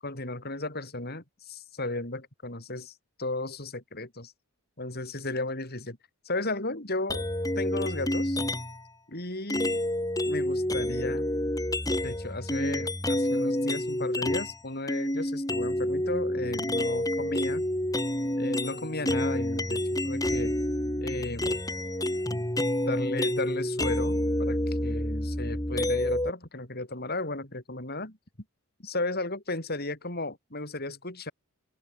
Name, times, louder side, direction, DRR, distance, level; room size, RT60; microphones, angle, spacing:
voice 1, 0.0-4.3 4.8-6.0 6.2-7.3 7.6-8.4 9.1-9.8 10.2-11.3 12.0-17.7 18.4-20.6 21.0-21.6 22.3-22.5 22.8-28.2 28.8-31.3, left 2 dB, 45° left, 6.2 m, -35 dB
sound 1, 7.1-8.8 9.5-14.6 14.9-26.3, left 1 dB, 15° left, 4.3 m, -28 dB
open air
head